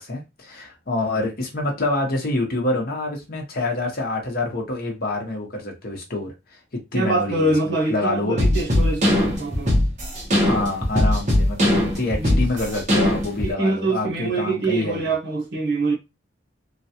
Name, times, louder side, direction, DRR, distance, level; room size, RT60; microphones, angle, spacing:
voice 1, 0.0-6.6 6.9-8.5 10.4-15.1, left 2 dB, 55° left, 0.9 m, -27 dB
voice 2, 6.9-9.8 12.2-12.4 13.4-15.9, right 2 dB, 65° right, 0.9 m, -24 dB
sound 1, 8.4-13.5, left 1 dB, 40° right, 1.1 m, -20 dB
3.2 x 2.3 x 2.7 m
head